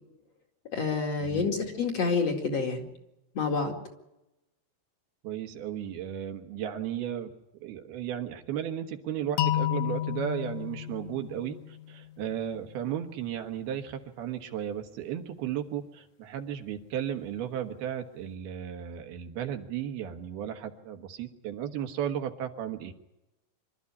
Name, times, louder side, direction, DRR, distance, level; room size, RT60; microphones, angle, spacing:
voice 1, 0.7-2.9 3.3-3.7, left 4 dB, 45° left, 2 dB, 2.9 m, -28 dB
voice 2, 5.2-7.3 7.6-22.9, right 10 dB, 75° right, 5 dB, 3.3 m, -35 dB
sound 1, 9.4-12.3, left 13 dB, 65° left, 2.0 m, -31 dB
26.0 x 13.5 x 9.6 m, 0.94 s
omnidirectional pair, 4.6 m